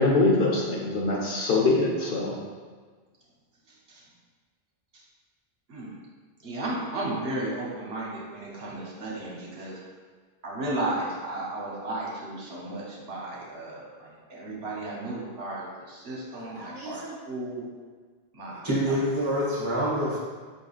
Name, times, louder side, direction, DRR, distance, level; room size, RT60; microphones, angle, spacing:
voice 1, 0.0-2.3, left 3 dB, 65° left, -2 dB, 0.9 m, -23 dB
voice 2, 6.4-9.8 10.4-17.7 18.3-18.7, right 2 dB, 75° right, -4 dB, 1.1 m, -34 dB
voice 3, 16.5-17.2 18.6-20.2, equal, 30° right, -7 dB, 1.3 m, -27 dB
5.2 x 3.6 x 2.3 m, 1.5 s
omnidirectional pair, 1.0 m